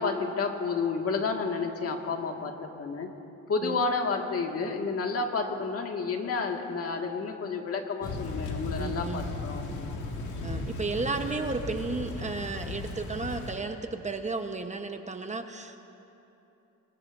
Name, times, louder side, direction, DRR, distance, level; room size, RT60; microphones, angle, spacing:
voice 1, 0.0-3.1 3.5-10.0, left 4 dB, 50° left, 2 dB, 2.0 m, -31 dB
Thunder / Rain, 8.0-13.6, left 3 dB, 75° left, 2.2 m, -36 dB
voice 2, 8.8-9.4 10.4-15.8, right 3 dB, 25° right, 6 dB, 1.0 m, -33 dB
25.5 x 21.0 x 2.7 m, 2.9 s
cardioid pair, 90°, 30 cm